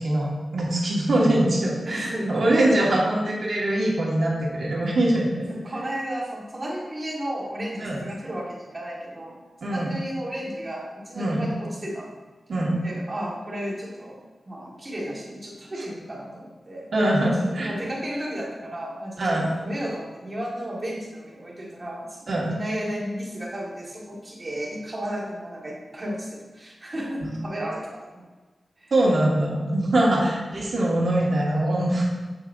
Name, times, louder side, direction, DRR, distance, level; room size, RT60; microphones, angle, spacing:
voice 1, 0.0-5.5 7.8-8.0 9.6-9.9 11.2-11.4 12.5-12.8 16.9-17.7 19.2-19.5 22.3-22.5 27.2-27.4 28.9-32.0, right 1 dB, 60° right, -3 dB, 1.7 m, -23 dB
voice 2, 1.9-2.3 2.9-3.1 5.5-12.1 12.8-16.9 17.4-28.3 28.8-28.9 30.2-30.3, equal, 30° right, -3 dB, 1.8 m, -33 dB
7.7 x 7.0 x 2.7 m, 1.2 s
wide cardioid pair, 105°, 0 cm